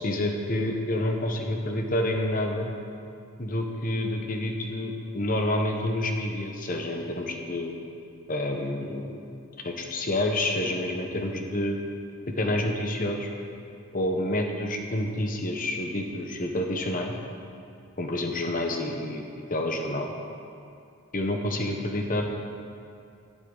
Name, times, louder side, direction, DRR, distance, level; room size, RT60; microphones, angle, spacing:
voice 1, 0.0-2.7 3.4-7.7 8.3-9.2 9.6-11.8 12.4-13.3 13.9-17.1 18.0-19.2 19.5-20.1 21.1-22.2, left 1 dB, 40° left, 3 dB, 1.1 m, -28 dB
12.0 x 12.0 x 4.0 m, 2.5 s
head